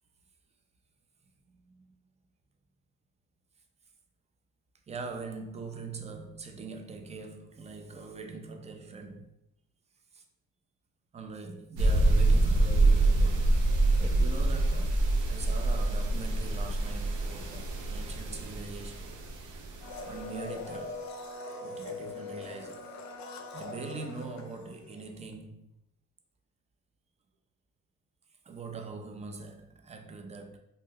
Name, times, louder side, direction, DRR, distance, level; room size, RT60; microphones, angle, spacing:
voice 1, 4.9-9.3 10.1-10.2 11.1-13.5 14.0-19.2 20.0-21.0 21.6-22.9 23.5-25.7 28.5-30.6, right 4 dB, 20° right, 0.4 m, -42 dB
sound 1, 11.8-20.2, right 2 dB, 80° right, 0.5 m, -26 dB
Domestic sounds home sounds, 19.8-25.1 25.3-25.4, left 3 dB, 65° left, 0.5 m, -41 dB
2.6 x 2.1 x 3.5 m
cardioid pair, 90°, 30 cm